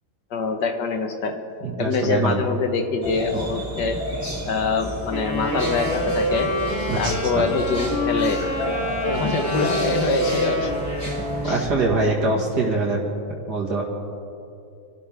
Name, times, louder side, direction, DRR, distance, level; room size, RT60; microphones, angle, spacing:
voice 1, 0.3-1.3 1.8-4.0 4.5-6.5 7.0-8.4 9.1-10.7 11.4-11.7, left 4 dB, 90° left, 5 dB, 1.9 m, -24 dB
voice 2, 1.6-2.4 6.9-7.2 11.4-13.0 13.5-13.8, right 3 dB, 75° right, -2 dB, 2.5 m, -23 dB
sound 1, 3.0-11.7, equal, 10° right, 3.5 m, -31 dB
sound 2, 5.1-11.6, equal, 20° left, 3.4 m, -26 dB
27.0 x 12.5 x 3.6 m, 2.6 s
omnidirectional pair, 1.8 m